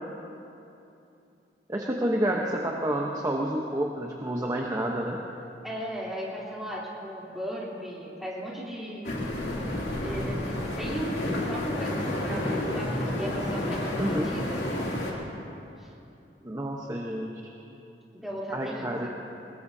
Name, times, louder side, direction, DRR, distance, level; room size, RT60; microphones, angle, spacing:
voice 1, 1.7-5.2 14.0-14.3 16.4-17.5 18.5-19.1, right 1 dB, 20° right, -1 dB, 0.9 m, -29 dB
voice 2, 5.6-9.4 10.0-11.1 11.4-14.6 15.8-15.9 18.1-19.1, equal, ahead, -7 dB, 3.3 m, -37 dB
sound 1, 9.0-15.1, left 1 dB, 75° left, 2.8 m, -30 dB
22.0 x 20.5 x 2.8 m, 2.7 s
head